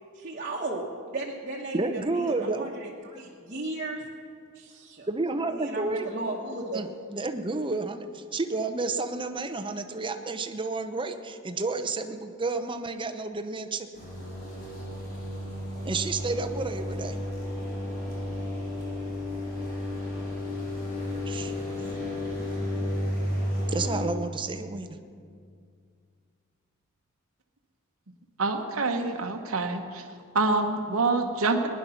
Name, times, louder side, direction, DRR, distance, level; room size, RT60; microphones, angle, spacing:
voice 1, 0.1-4.0 4.5-5.1 5.5-6.9, right 2 dB, 40° right, -5 dB, 1.3 m, -35 dB
voice 2, 1.7-2.7 5.1-6.1 6.7-13.9 15.8-17.2 21.3-21.5 23.7-25.0, right 3 dB, 25° right, 7 dB, 0.7 m, -31 dB
sound 1, 13.9-24.0, left 1 dB, 45° left, 4.1 m, -32 dB
voice 3, 28.4-30.0 30.3-31.7, right 3 dB, 70° right, 4 dB, 1.0 m, -26 dB
18.5 x 10.5 x 5.8 m, 2.2 s
head